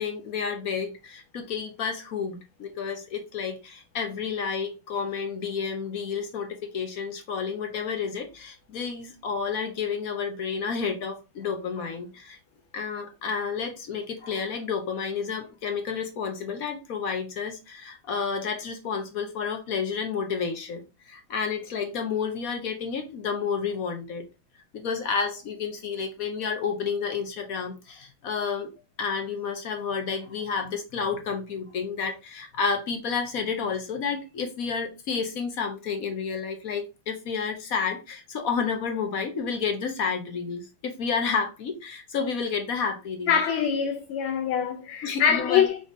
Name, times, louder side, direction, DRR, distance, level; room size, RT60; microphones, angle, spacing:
voice 1, 0.0-12.4 12.7-24.2 24.7-28.7 29.0-43.4 45.0-45.7, left 6 dB, 60° left, 1.0 m, -30 dB
voice 2, 43.3-45.8, left 8 dB, 80° left, 1.5 m, -24 dB
4.9 x 3.8 x 2.6 m
omnidirectional pair, 2.3 m